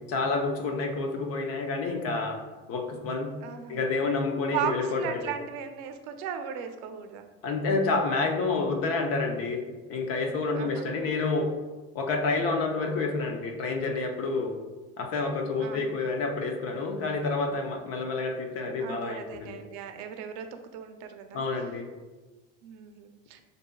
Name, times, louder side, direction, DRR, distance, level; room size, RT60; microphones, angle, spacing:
voice 1, 0.1-2.4 2.7-3.3 3.7-5.3 7.4-9.6 9.9-11.5 11.9-14.6 15.0-19.6 21.3-21.9, left 3 dB, 50° left, 3 dB, 0.7 m, -29 dB
voice 2, 3.4-3.9 4.5-7.3 10.5-11.0 14.5-14.6 15.6-16.0 18.8-21.4 22.6-23.4, right 8 dB, 65° right, 7 dB, 0.6 m, -37 dB
6.4 x 2.7 x 2.3 m, 1.2 s
supercardioid pair, 130°, 29 cm